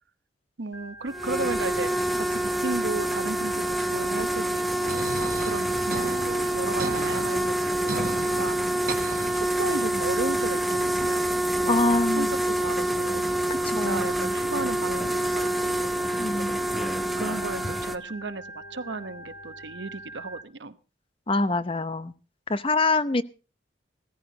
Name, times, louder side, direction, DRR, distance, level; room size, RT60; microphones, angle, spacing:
voice 1, 0.6-8.6 8.8-11.3 11.6-11.9 12.2-15.9 16.3-20.8, right 3 dB, 80° right, 12 dB, 1.0 m, -35 dB
Organ, 0.7-20.4, right 1 dB, 85° left, 1.4 m, -45 dB
sound 1, 1.1-18.0, right 1 dB, ahead, 0.8 m, -27 dB
sound 2, 4.9-9.9, right 3 dB, 50° right, 1.1 m, -36 dB
voice 2, 11.7-12.3 13.6-14.0 16.2-16.6 21.3-22.1 22.5-23.2, left 2 dB, 30° left, 14 dB, 0.8 m, -24 dB
17.0 x 14.5 x 3.9 m, 0.34 s
head